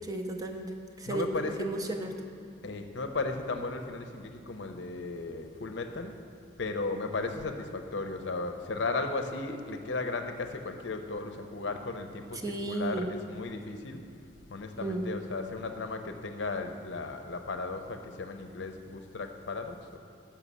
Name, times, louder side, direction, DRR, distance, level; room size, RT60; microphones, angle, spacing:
voice 1, 0.0-2.1 12.4-13.1 14.8-15.1, right 2 dB, 20° right, 4 dB, 0.5 m, -34 dB
voice 2, 1.1-1.7 2.6-6.1 6.6-14.0 14.5-20.0, left 3 dB, 70° left, 6 dB, 0.6 m, -35 dB
6.2 x 5.8 x 6.8 m, 2.6 s
head